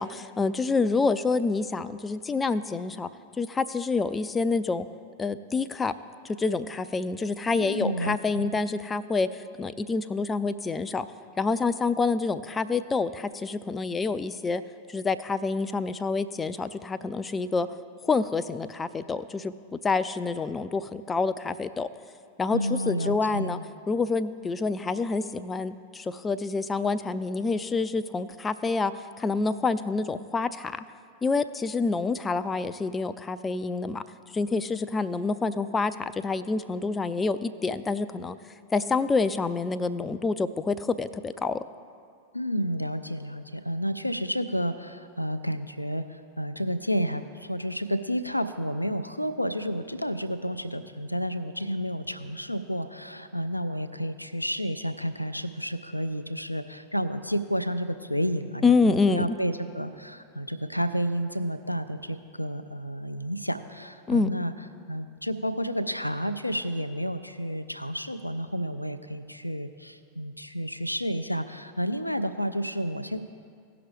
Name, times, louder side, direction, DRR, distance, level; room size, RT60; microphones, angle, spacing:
voice 1, 0.0-3.1 3.4-4.9 5.2-5.9 6.2-11.1 11.4-14.6 14.9-17.7 18.0-21.9 22.4-23.6 23.9-28.9 29.2-30.8 31.2-34.0 34.3-38.4 38.7-41.6 58.6-59.3 64.1-64.3, left 4 dB, 15° left, 12 dB, 0.3 m, -27 dB
voice 2, 7.5-8.6 22.5-23.6 42.3-64.5 64.9-73.2, equal, 90° left, 10 dB, 0.4 m, -31 dB
17.5 x 5.9 x 3.3 m, 2.3 s
figure-of-eight pair, 90°, 0 cm